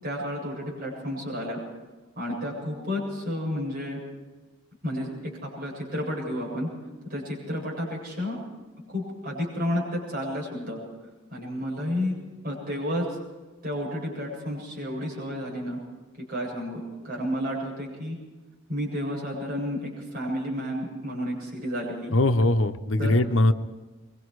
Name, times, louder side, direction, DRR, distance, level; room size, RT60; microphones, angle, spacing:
voice 1, 0.0-1.6 2.2-4.0 4.8-6.7 7.0-8.4 8.9-10.8 11.3-12.2 12.4-13.2 13.6-15.8 16.3-18.2 18.7-22.1 23.0-23.2, equal, 50° right, -3 dB, 7.9 m, -31 dB
voice 2, 22.1-23.5, left 1 dB, 80° left, 8 dB, 1.0 m, -21 dB
25.0 x 23.5 x 4.8 m, 1.2 s
head